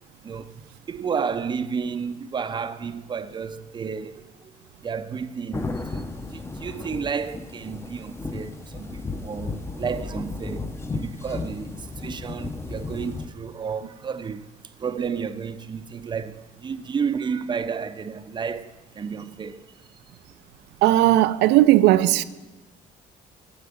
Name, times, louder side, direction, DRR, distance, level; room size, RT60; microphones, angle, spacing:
voice 1, 0.2-19.8, right 6 dB, 25° right, 0.5 m, -32 dB
sound 1, 5.5-13.3, left 3 dB, 15° left, 0.6 m, -34 dB
voice 2, 20.8-22.2, right 15 dB, 90° right, 0.4 m, -17 dB
8.1 x 7.5 x 7.0 m
cardioid pair, 110°, 17 cm